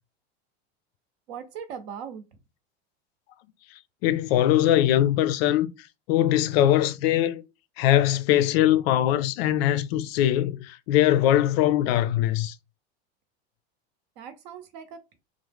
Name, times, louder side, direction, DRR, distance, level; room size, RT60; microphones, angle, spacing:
voice 1, 1.3-2.2 14.2-15.2, right 7 dB, 65° right, 0.8 m, -39 dB
voice 2, 4.0-5.7 6.1-7.4 7.8-12.5, left 12 dB, 65° left, 0.5 m, -21 dB
2.9 x 2.0 x 3.4 m
supercardioid pair, 155°, 33 cm